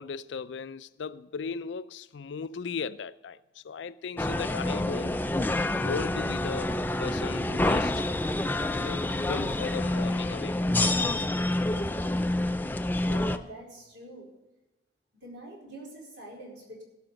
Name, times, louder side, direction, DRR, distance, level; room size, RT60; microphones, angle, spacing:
voice 1, 0.0-5.3 5.8-6.7 7.0-8.0 8.7-11.1, left 5 dB, 85° left, 0.4 m, -37 dB
sound 1, 4.2-13.4, left 1 dB, 10° left, 0.3 m, -28 dB
voice 2, 13.0-14.3 15.2-16.8, right 1 dB, 85° right, 4.6 m, -45 dB
16.5 x 5.9 x 6.6 m
head